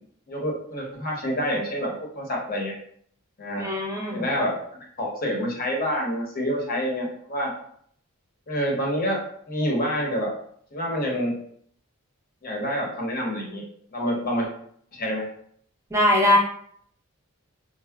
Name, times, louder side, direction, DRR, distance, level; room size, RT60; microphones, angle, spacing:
voice 1, 0.3-2.7 3.4-3.7 4.1-4.6 5.0-7.5 8.5-9.2 9.5-10.3 10.7-11.4 12.4-13.6 13.9-14.5 14.9-15.3, equal, 40° left, -1 dB, 0.8 m, -27 dB
voice 2, 3.6-4.2 15.9-16.4, left 1 dB, 15° right, -2 dB, 0.5 m, -21 dB
4.5 x 2.1 x 2.2 m, 0.64 s
head